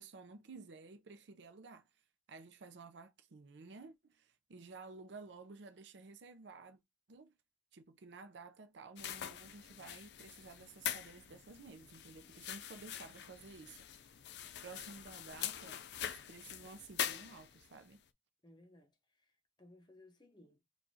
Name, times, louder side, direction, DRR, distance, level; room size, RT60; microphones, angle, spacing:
voice 1, 0.0-1.9 2.3-6.8 7.1-7.3 7.7-14.1 14.6-18.0, right 4 dB, 80° right, 0.5 m, -53 dB
sound 1, 9.0-17.8, left 10 dB, 65° left, 0.4 m, -44 dB
voice 2, 18.4-19.3 19.6-20.6, left 1 dB, 25° left, 0.8 m, -61 dB
4.8 x 2.4 x 2.7 m
head